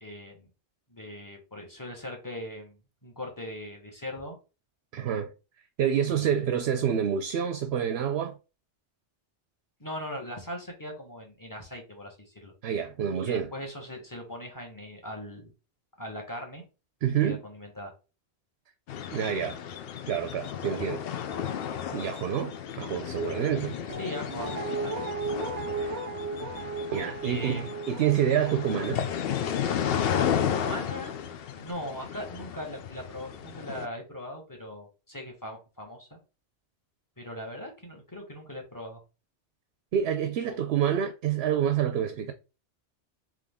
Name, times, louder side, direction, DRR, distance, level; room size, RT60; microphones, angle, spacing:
voice 1, 0.0-0.5 0.9-2.8 3.0-4.4 6.1-6.3 9.8-12.5 13.2-15.5 16.0-16.6 17.2-17.9 23.5-25.0 27.2-27.7 30.1-31.2 31.6-36.2 37.2-39.0 40.5-40.6, left 1 dB, 15° left, 1.3 m, -40 dB
voice 2, 4.9-5.3 5.8-8.4 12.6-13.5 17.0-17.4 19.1-19.6 20.1-21.0 21.9-23.8 25.8-26.0 26.9-29.0 39.9-42.3, right 9 dB, 70° right, 0.8 m, -27 dB
sound 1, 18.9-33.9, left 8 dB, 65° left, 0.7 m, -33 dB
Guitar, 23.9-30.9 31.2-31.3, right 3 dB, 40° right, 0.8 m, -37 dB
3.7 x 3.2 x 3.6 m
omnidirectional pair, 1.2 m